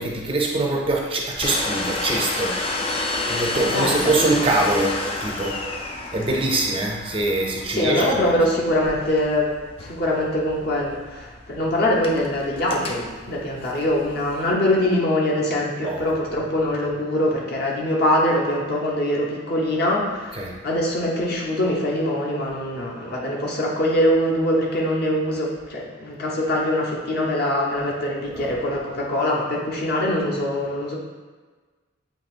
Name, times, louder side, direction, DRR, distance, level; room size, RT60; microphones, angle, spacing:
voice 1, 0.0-2.6 3.3-5.6 6.1-8.4 15.8-16.0 20.3-20.5 28.3-28.5, right 2 dB, 25° right, -1 dB, 0.5 m, -24 dB
Domestic sounds home sounds, 1.4-14.5, left 3 dB, 30° left, 0.3 m, -31 dB
voice 2, 3.7-4.5 7.7-9.5 9.8-31.0, left 1 dB, 50° left, -3 dB, 0.9 m, -23 dB
7.4 x 2.9 x 2.5 m, 1.4 s
head